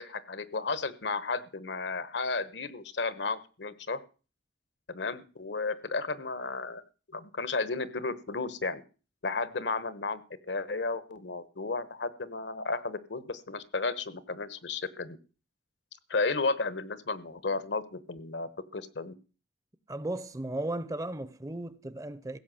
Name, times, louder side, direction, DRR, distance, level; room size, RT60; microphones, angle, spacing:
voice 1, 0.0-4.0 4.9-6.8 7.1-8.8 9.2-15.2 16.1-19.1, left 3 dB, 80° left, 1.1 m, -33 dB
voice 2, 19.9-22.4, right 1 dB, 20° right, 0.6 m, -35 dB
16.0 x 5.9 x 7.6 m
head